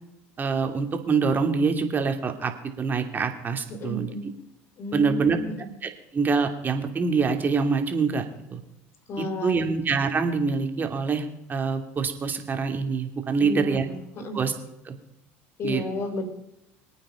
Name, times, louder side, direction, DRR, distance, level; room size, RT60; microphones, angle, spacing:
voice 1, 0.4-2.5 2.8-4.1 4.9-5.4 5.8-8.6 9.2-13.9 14.3-14.5 14.8-14.9 15.6-15.8, right 5 dB, 30° right, 5 dB, 2.8 m, -25 dB
voice 2, 3.8-4.3 4.8-5.7 9.1-9.7 13.4-14.4 15.6-16.2, left 1 dB, 45° left, 7 dB, 3.7 m, -32 dB
25.5 x 9.1 x 5.1 m, 0.87 s
supercardioid pair, 90°, 6 cm